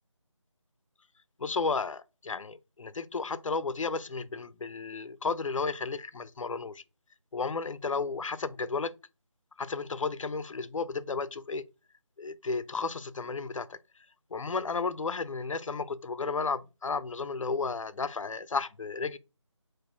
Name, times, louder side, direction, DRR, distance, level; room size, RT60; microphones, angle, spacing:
voice 1, 1.4-6.8 7.3-8.9 9.6-11.6 12.2-13.8 14.3-19.2, left 4 dB, 80° left, 0.5 m, -33 dB
4.1 x 2.6 x 3.5 m
figure-of-eight pair, 180°, 16 cm